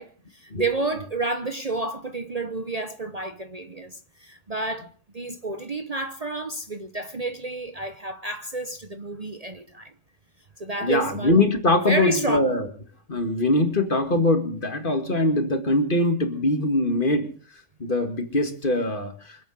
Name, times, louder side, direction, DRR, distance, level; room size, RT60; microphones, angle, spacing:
voice 1, 0.0-4.9 5.1-9.9 10.6-11.4 11.9-12.4, right 2 dB, 35° right, 1.0 m, -30 dB
voice 2, 10.8-12.7 13.1-17.3 17.8-19.4, left 2 dB, 45° left, 2.1 m, -22 dB
25.5 x 8.8 x 6.4 m
omnidirectional pair, 1.3 m